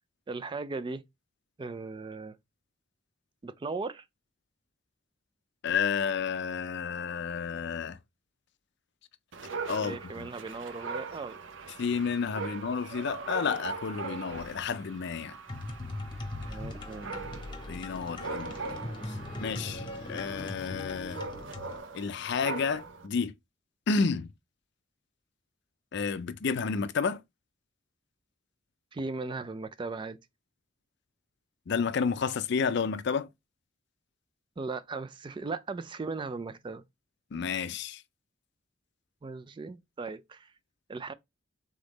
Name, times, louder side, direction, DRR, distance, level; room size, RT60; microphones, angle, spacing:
voice 1, 0.3-1.0 1.6-2.4 3.4-4.0 9.8-11.4 16.5-17.3 28.9-30.2 34.6-36.8 39.2-40.5 40.9-41.1, right 3 dB, 25° right, 0.3 m, -37 dB
voice 2, 5.6-8.0 9.7-10.3 11.8-15.4 17.7-18.5 19.1-21.2 21.9-23.3 23.9-24.3 25.9-27.2 31.7-33.3 37.3-38.0, left 5 dB, 60° left, 0.4 m, -31 dB
Dog, 9.3-23.1, right 4 dB, 75° right, 0.7 m, -41 dB
sound 1, 15.5-21.8, left 2 dB, 25° left, 0.9 m, -40 dB
3.7 x 3.5 x 3.9 m
head